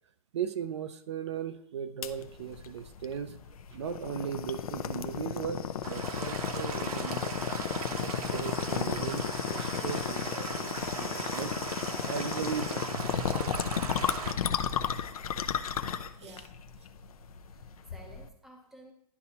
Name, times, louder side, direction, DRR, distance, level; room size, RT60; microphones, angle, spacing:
voice 1, 0.3-3.4 3.7-7.4 8.0-11.5 12.0-13.7 14.5-15.0 16.2-16.4, right 8 dB, 50° right, 9 dB, 0.5 m, -38 dB
sound 1, 2.0-18.3, left 8 dB, 75° left, 0.6 m, -34 dB
sound 2, 5.8-14.3, right 5 dB, 75° right, 1.1 m, -38 dB
voice 2, 16.2-16.6 17.5-18.9, right 1 dB, ahead, 1 dB, 0.6 m, -53 dB
11.0 x 4.1 x 2.8 m, 0.69 s
hypercardioid pair, 160°, 19 cm